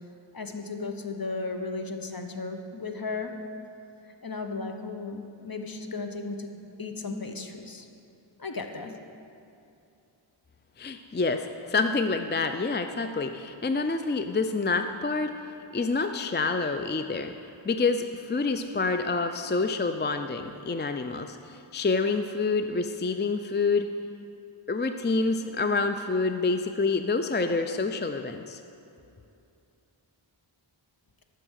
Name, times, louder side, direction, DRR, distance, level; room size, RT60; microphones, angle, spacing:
voice 1, 0.3-3.3 4.2-6.5 6.8-7.9 8.4-8.9, left 3 dB, 45° left, 5 dB, 1.0 m, -35 dB
voice 2, 10.8-15.3 15.7-17.3 17.6-23.9 24.7-28.6, left 3 dB, 25° left, 7 dB, 0.4 m, -27 dB
12.5 x 6.7 x 6.4 m, 2.7 s
wide cardioid pair, 45°, 49 cm